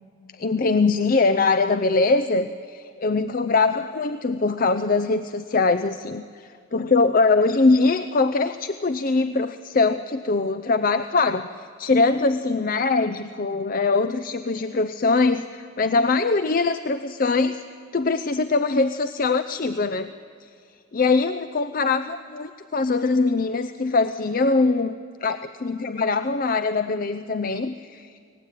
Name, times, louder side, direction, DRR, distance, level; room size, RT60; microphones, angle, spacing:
voice 1, 0.3-17.6 17.9-20.1 20.9-28.2, left 3 dB, 45° left, 11 dB, 0.6 m, -22 dB
30.0 x 19.0 x 9.1 m, 2.3 s
head